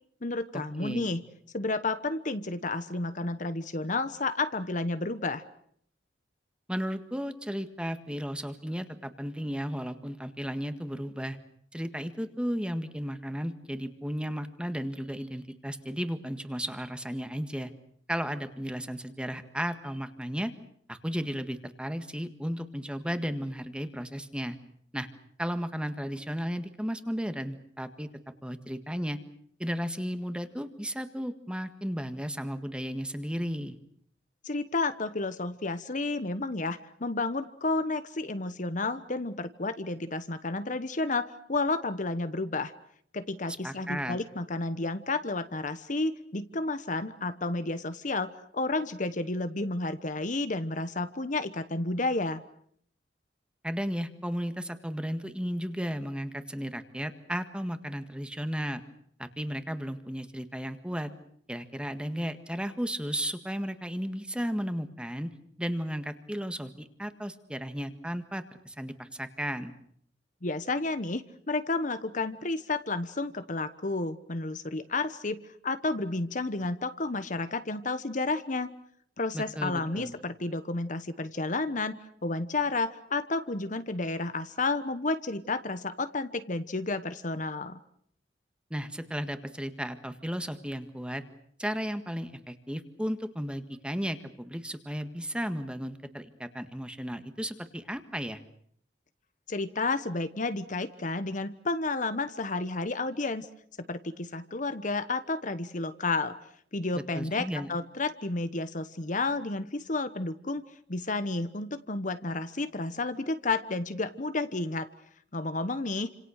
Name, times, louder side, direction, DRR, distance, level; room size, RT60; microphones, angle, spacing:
voice 1, 0.2-1.2 1.5-5.4 34.4-42.7 43.1-52.4 70.4-78.7 79.2-87.8 99.5-103.5 103.8-106.4 106.7-110.6 110.9-114.9 115.3-116.1, left 3 dB, 45° left, 11 dB, 1.1 m, -31 dB
voice 2, 0.8-1.1 6.7-11.4 11.7-17.7 18.1-20.5 20.9-24.6 24.9-25.1 25.4-28.1 28.4-29.2 29.6-33.8 43.6-44.2 53.6-58.8 59.2-61.1 61.5-65.3 65.6-69.7 79.3-80.1 88.7-91.2 91.6-98.4 107.0-107.7, equal, 5° right, 9 dB, 1.7 m, -34 dB
29.0 x 27.0 x 6.5 m, 0.65 s
head